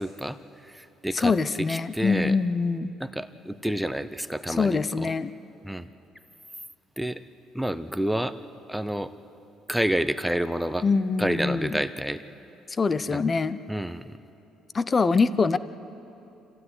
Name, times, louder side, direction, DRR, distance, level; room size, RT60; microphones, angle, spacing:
voice 1, 0.0-1.3 1.6-2.3 3.0-5.1 5.6-5.9 7.0-7.2 7.5-8.4 8.7-9.1 9.7-10.8 11.2-12.2 13.1-13.2 13.7-14.2, right 1 dB, ahead, 10 dB, 0.8 m, -29 dB
voice 2, 1.1-2.9 4.6-5.3 10.8-11.8 12.8-13.6 14.7-15.6, left 4 dB, 30° left, 15 dB, 0.7 m, -24 dB
26.5 x 15.0 x 9.7 m, 3.0 s
cardioid pair, 85°, 0 cm